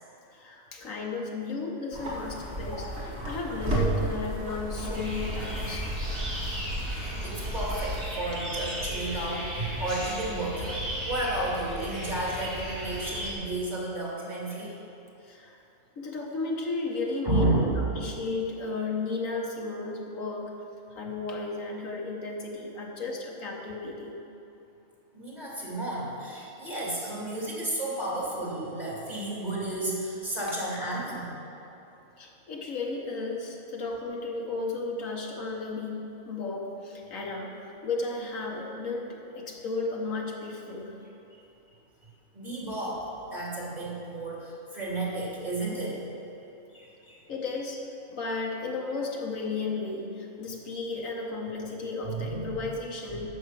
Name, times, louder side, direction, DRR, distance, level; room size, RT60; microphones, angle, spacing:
voice 1, 0.3-2.9 3.2-5.9 15.2-15.6 16.0-20.5 20.9-24.2 32.2-40.9 47.3-47.8 48.1-53.3, left 3 dB, 75° left, -1 dB, 1.7 m, -34 dB
sound 1, 1.9-8.0, right 1 dB, 50° right, 2.2 m, -33 dB
voice 2, 2.6-2.9 6.9-10.8 11.0-14.7 17.2-17.8 25.1-31.3 42.3-46.0 46.7-47.2 52.1-52.6 53.1-53.3, right 2 dB, 30° right, -6 dB, 2.8 m, -32 dB
sound 2, 4.9-13.3, equal, 85° right, 3.1 m, -35 dB
11.5 x 7.3 x 5.9 m, 2.9 s
omnidirectional pair, 1.4 m